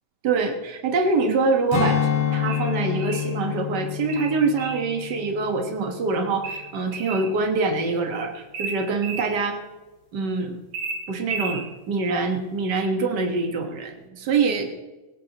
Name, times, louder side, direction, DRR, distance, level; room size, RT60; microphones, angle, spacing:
voice 1, 0.2-9.6 10.1-10.6 11.1-14.7, right 4 dB, 90° right, 4 dB, 0.9 m, -25 dB
Strum, 1.7-6.4 6.8-7.0, left 8 dB, 45° left, 2.5 m, -28 dB
sound 1, 2.5-3.3 4.1-4.9 6.4-7.3 8.5-9.3 10.7-11.6, right 4 dB, 35° right, 3.3 m, -33 dB
18.5 x 17.5 x 3.0 m, 1.2 s
omnidirectional pair, 4.1 m